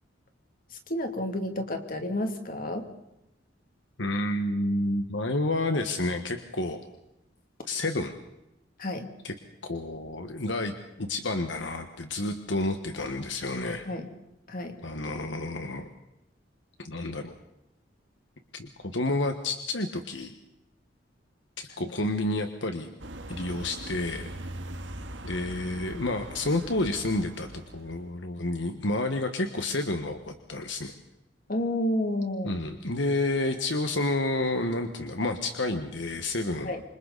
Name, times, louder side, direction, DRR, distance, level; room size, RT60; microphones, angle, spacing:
voice 1, 0.7-2.9 8.8-9.1 13.8-14.1 14.5-14.8 21.8-21.9 31.5-32.6 36.6-36.8, left 1 dB, 50° left, 5 dB, 2.7 m, -30 dB
voice 2, 4.0-6.8 7.7-8.2 9.2-9.3 9.6-10.7 11.0-13.9 14.8-15.9 16.8-17.3 18.5-20.4 21.6-22.9 23.3-24.3 25.2-30.9 32.4-36.7, left 2 dB, 75° left, 6 dB, 1.5 m, -30 dB
sound 1, 23.0-28.0, right 1 dB, 75° right, 1.8 m, -41 dB
28.0 x 25.5 x 4.1 m, 0.89 s
head